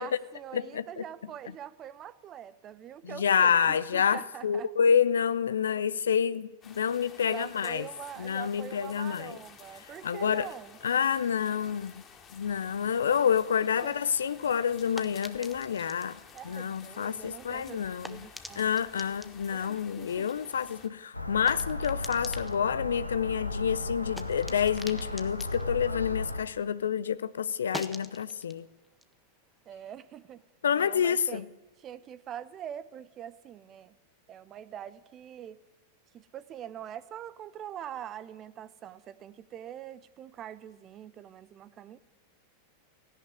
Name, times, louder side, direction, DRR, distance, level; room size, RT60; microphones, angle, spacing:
voice 1, 0.0-4.7 7.3-10.8 13.8-13.9 16.3-18.8 19.5-20.3 29.7-30.4 30.8-31.5 31.8-34.0 34.3-35.6 36.1-42.0, right 10 dB, 30° right, 0.9 m, -44 dB
voice 2, 0.5-1.0 3.0-7.9 8.2-9.4 10.0-10.5 10.8-12.0 12.3-16.2 16.4-18.3 18.6-28.7 30.6-31.4, left 7 dB, 65° left, 0.7 m, -28 dB
sound 1, 6.6-20.9, left 6 dB, 25° left, 3.0 m, -52 dB
sound 2, 14.1-26.9 27.2-30.4, equal, ahead, 1.4 m, -48 dB
sound 3, 21.1-26.4, left 2 dB, 85° left, 1.2 m, -35 dB
17.5 x 16.0 x 9.8 m
figure-of-eight pair, 90°, 0 cm